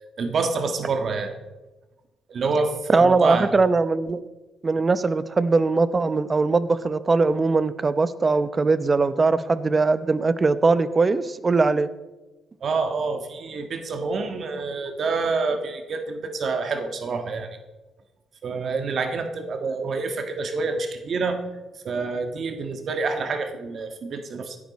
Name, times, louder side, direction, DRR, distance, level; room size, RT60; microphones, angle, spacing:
voice 1, 0.2-1.3 2.3-3.5 12.6-17.5 18.4-21.4 21.8-24.6, right 4 dB, 55° right, 6 dB, 1.5 m, -27 dB
voice 2, 2.9-4.2 4.6-11.9, right 3 dB, 30° right, 14 dB, 0.7 m, -21 dB
16.5 x 11.0 x 4.2 m, 1.1 s
cardioid pair, 90°, 0 cm